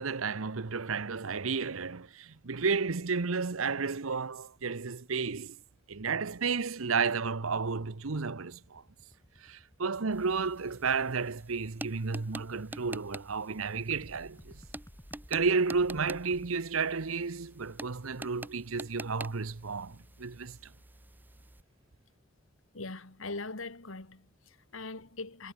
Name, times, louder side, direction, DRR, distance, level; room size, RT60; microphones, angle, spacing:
voice 1, 0.0-5.6 5.9-8.8 9.4-14.6 15.3-20.6, right 5 dB, 85° right, 0.9 m, -32 dB
sound 1, 7.5-16.5, equal, 15° left, 2.4 m, -55 dB
sound 2, 10.1-21.6, right 2 dB, 10° right, 0.5 m, -48 dB
voice 2, 22.7-25.5, left 3 dB, 75° left, 2.2 m, -41 dB
head